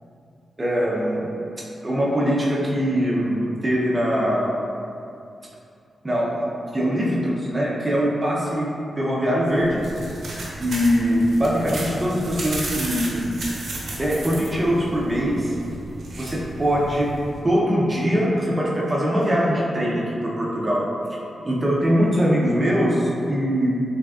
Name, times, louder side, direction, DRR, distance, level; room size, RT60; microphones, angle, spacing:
voice 1, 0.6-1.2 1.8-4.7 6.0-6.5 6.7-9.8 10.6-13.4 14.0-15.5 16.2-17.1 17.4-20.9 21.4-23.7, equal, 20° right, -5 dB, 0.6 m, -22 dB
sound 1, 9.5-17.4, right 1 dB, 65° right, 0.7 m, -34 dB
3.7 x 3.4 x 2.3 m, 2.6 s
wide cardioid pair, 105°, 0 cm